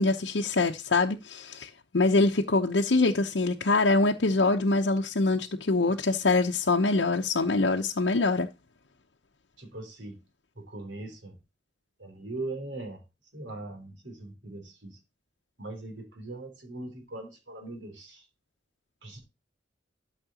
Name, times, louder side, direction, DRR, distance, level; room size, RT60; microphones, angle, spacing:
voice 1, 0.0-8.5, left 3 dB, 75° left, 0.8 m, -24 dB
voice 2, 9.6-10.2 10.5-11.4 12.0-13.0 13.3-15.0 15.6-18.2 19.0-19.2, right 2 dB, 90° right, 3.3 m, -40 dB
13.0 x 5.9 x 2.9 m
head